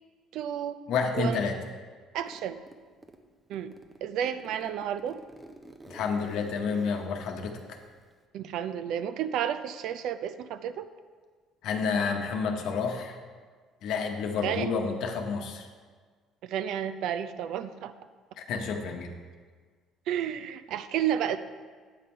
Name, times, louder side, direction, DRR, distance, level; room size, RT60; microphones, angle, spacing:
voice 1, 0.3-0.8 1.1-1.4 2.1-2.6 3.5-3.7 4.0-5.2 8.3-10.8 14.4-14.7 16.4-17.9 20.1-21.4, right 9 dB, 70° right, 12 dB, 0.4 m, -31 dB
voice 2, 0.9-1.6 5.9-7.8 11.6-13.2 13.8-15.7 18.4-19.1, left 5 dB, 70° left, 4 dB, 0.9 m, -30 dB
Zipper (clothing), 2.2-3.2 3.5-8.2, right 1 dB, 10° right, 0.6 m, -50 dB
8.6 x 5.3 x 4.4 m, 1.5 s
cardioid pair, 125°, 0 cm